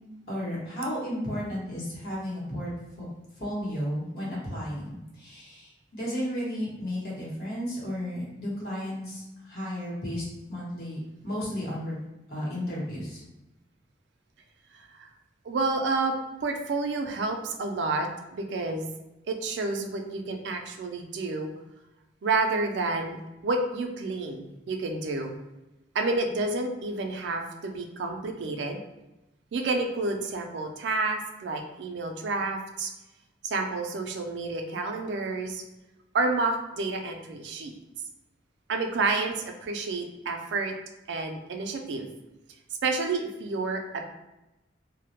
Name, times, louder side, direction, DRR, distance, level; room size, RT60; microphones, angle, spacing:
voice 1, 0.3-2.7 3.4-10.2 10.5-11.0 11.2-12.0 12.3-13.2, equal, 55° left, -6 dB, 0.9 m, -33 dB
voice 2, 14.7-15.1 15.4-18.9 19.3-21.5 22.2-25.3 25.9-28.8 29.5-32.9 33.4-35.6 36.1-37.7 38.7-40.7 41.1-42.1 42.8-44.0, right 3 dB, 75° right, 4 dB, 0.4 m, -30 dB
2.1 x 2.0 x 2.8 m, 0.98 s
head